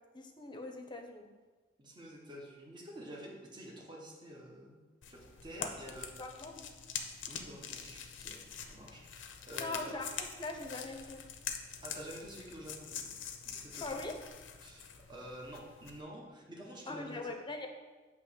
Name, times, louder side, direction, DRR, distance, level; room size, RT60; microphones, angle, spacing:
voice 1, 0.1-1.3 5.6-5.7 6.2-6.7 9.5-11.3 13.8-14.2 16.9-17.7, left 2 dB, 25° left, 3 dB, 0.7 m, -41 dB
voice 2, 1.8-4.8 5.1-6.1 7.3-10.0 11.8-13.1 13.4-14.0 14.6-17.4, right 1 dB, 25° right, -2 dB, 1.0 m, -49 dB
sound 1, 5.0-16.0, left 7 dB, 90° left, 0.6 m, -45 dB
8.1 x 3.0 x 5.8 m, 1.3 s
head